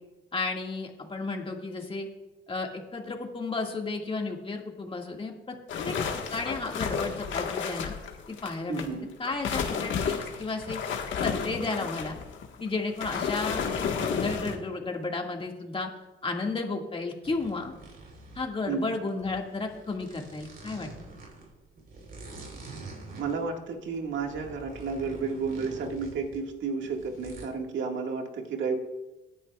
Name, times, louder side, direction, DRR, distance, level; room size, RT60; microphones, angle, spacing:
voice 1, 0.3-2.1 2.5-5.5 5.8-6.0 6.3-7.9 8.3-8.9 9.2-10.8 11.2-12.2 12.6-15.9 16.2-17.7 18.4-20.9, left 3 dB, 25° left, 1 dB, 2.0 m, -33 dB
sound 1, 5.7-8.9 9.2-14.6, left 6 dB, 75° left, 1.5 m, -32 dB
voice 2, 8.7-9.1 18.7-19.0 23.1-28.8, right 5 dB, 70° right, 2 dB, 1.9 m, -32 dB
sound 2, 17.2-27.5, right 3 dB, 50° right, 3.9 m, -46 dB
18.5 x 10.0 x 2.4 m, 1.1 s
cardioid pair, 90°, 20 cm